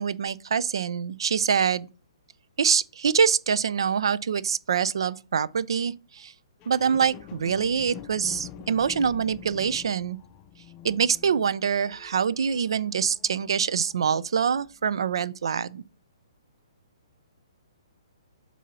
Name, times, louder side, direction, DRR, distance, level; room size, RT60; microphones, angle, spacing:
voice 1, 0.0-1.9 2.6-6.3 6.7-10.2 10.8-15.8, right 7 dB, 60° right, 0.4 m, -25 dB
sound 1, 6.6-14.0 14.6-14.7, left 10 dB, 25° left, 0.5 m, -46 dB
7.2 x 2.7 x 5.6 m
figure-of-eight pair, 125°, 3 cm